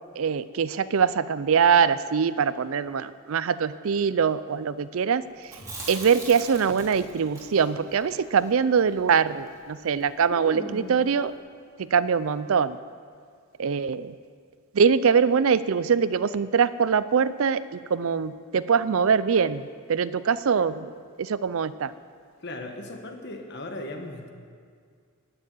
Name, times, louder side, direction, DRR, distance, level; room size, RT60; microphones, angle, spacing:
voice 1, 0.2-5.2 5.9-11.3 11.8-12.8 13.6-14.1 14.7-21.9, right 6 dB, 70° right, 16 dB, 0.4 m, -23 dB
Chewing mastication, 5.4-9.6 9.9-10.0 10.3-11.0, right 1 dB, 15° right, 2.8 m, -40 dB
voice 2, 22.4-24.3, left 2 dB, 50° left, 4 dB, 1.4 m, -37 dB
14.5 x 6.9 x 9.6 m, 2.1 s
head